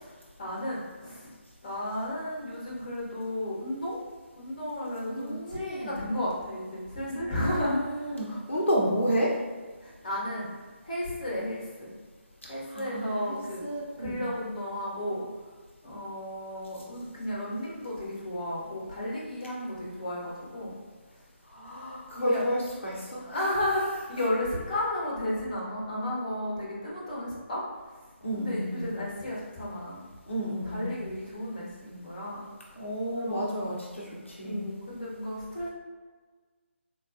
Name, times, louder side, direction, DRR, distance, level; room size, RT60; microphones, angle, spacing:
voice 1, 0.4-1.3 1.6-4.0 4.3-8.2 8.8-8.9 9.8-10.5 10.8-11.9 12.5-13.7 14.0-15.3 15.8-20.8 22.2-22.4 23.2-27.6 28.4-30.0 30.6-32.5 33.1-33.7 34.4-35.7, left 1 dB, 35° left, -5 dB, 1.0 m, -33 dB
voice 2, 5.0-6.1 7.1-9.4 12.7-14.2 21.5-23.5 28.2-28.9 30.3-30.9 32.8-34.7, equal, 70° left, -4 dB, 0.7 m, -31 dB
3.8 x 2.2 x 2.5 m, 1.4 s
figure-of-eight pair, 150°, 7 cm